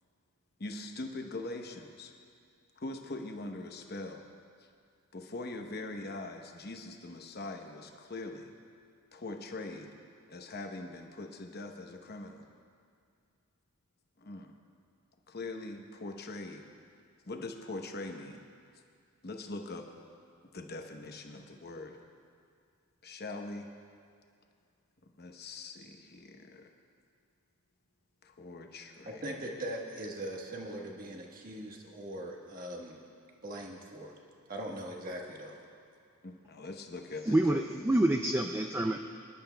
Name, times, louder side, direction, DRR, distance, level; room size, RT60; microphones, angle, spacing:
voice 1, 0.6-2.1 2.8-4.3 4.6-4.7 5.1-8.5 9.1-9.9 10.3-12.5 14.2-14.5 15.3-16.7 17.3-18.5 19.2-19.9 20.5-22.0 23.0-23.7 25.2-26.7 28.2-29.2 36.2-37.8, left 2 dB, 45° left, 3 dB, 0.9 m, -42 dB
voice 2, 29.1-33.0 33.4-34.1 34.5-35.6, right 1 dB, 40° right, 0 dB, 1.3 m, -40 dB
voice 3, 37.2-39.0, right 1 dB, 10° right, 5 dB, 0.3 m, -27 dB
25.0 x 11.0 x 2.2 m, 2.3 s
head